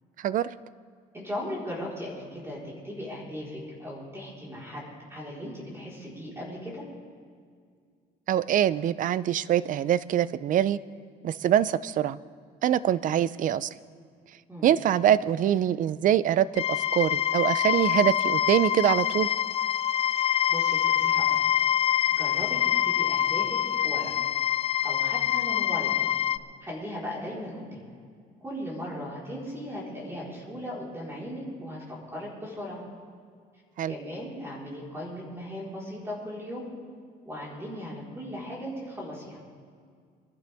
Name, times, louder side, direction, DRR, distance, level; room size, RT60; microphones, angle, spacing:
voice 1, 0.2-0.5 8.3-10.8 11.2-12.2 12.6-13.7 14.6-19.3 33.8-33.9, right 10 dB, 50° right, 18 dB, 0.5 m, -24 dB
voice 2, 1.1-2.6 2.8-6.8 14.5-14.7 20.2-21.5 22.1-24.1 24.8-26.0 26.6-27.9 28.4-32.8 33.9-36.6 37.2-39.4, equal, 15° right, -5 dB, 4.2 m, -37 dB
sound 1, 16.6-26.4, left 10 dB, 35° left, 0.4 m, -25 dB
24.0 x 11.5 x 3.5 m, 2.1 s
cardioid pair, 110°, 17 cm